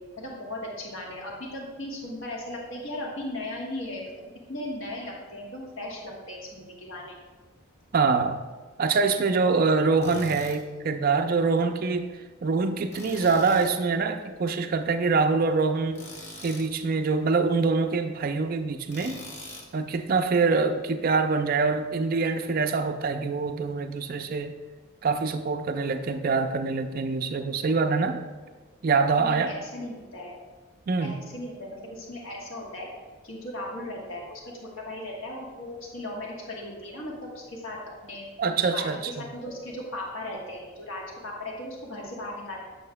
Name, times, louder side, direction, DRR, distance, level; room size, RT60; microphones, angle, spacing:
voice 1, 0.2-4.1 4.5-7.2 29.2-30.3 31.0-32.9 33.2-37.8 38.0-38.3 38.7-42.6, left 1 dB, 65° left, -2 dB, 1.3 m, -37 dB
voice 2, 7.9-8.4 8.8-12.1 12.4-16.0 16.4-19.2 19.7-24.5 25.0-28.2 28.8-29.5 30.9-31.2 38.4-39.1, right 4 dB, 40° right, 7 dB, 0.3 m, -25 dB
Tools, 10.0-10.6 12.9-13.8 15.9-16.7 18.9-19.7, left 1 dB, 30° left, 0.7 m, -42 dB
8.5 x 6.3 x 2.2 m, 1.3 s
head